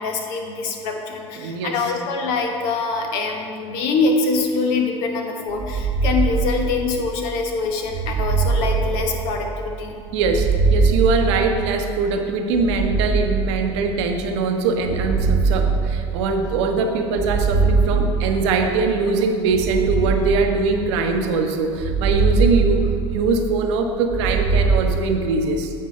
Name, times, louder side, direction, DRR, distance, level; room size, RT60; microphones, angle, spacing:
voice 1, 0.0-9.9, left 4 dB, 65° left, 3 dB, 1.0 m, -24 dB
voice 2, 1.4-1.7 10.1-22.8 23.1-25.7, right 4 dB, 70° right, 4 dB, 0.8 m, -22 dB
sound 1, 5.5-7.1 7.9-9.6 10.1-11.9 12.5-14.0 14.7-16.5 17.1-18.7 19.4-21.1 21.7-23.5 24.0-24.9, right 4 dB, 40° right, 1.1 m, -21 dB
8.6 x 4.5 x 4.3 m, 2.4 s
hypercardioid pair, 80°, 15 cm